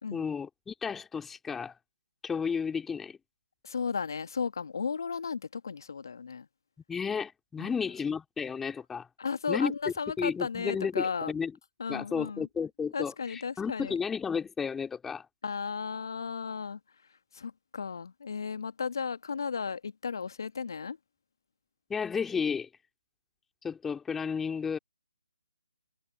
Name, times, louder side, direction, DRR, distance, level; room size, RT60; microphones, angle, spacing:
voice 1, 0.1-1.7 2.2-3.2 6.9-9.1 9.5-9.7 10.2-11.5 11.9-15.2 21.9-22.7 23.6-24.8, left 6 dB, 5° left, 2.5 m, -32 dB
voice 2, 3.6-6.4 7.6-7.7 9.2-11.3 11.8-12.5 12.9-13.9 15.4-16.8 17.3-21.0, left 5 dB, 55° left, 1.6 m, -34 dB
figure-of-eight pair, 145°, 3 cm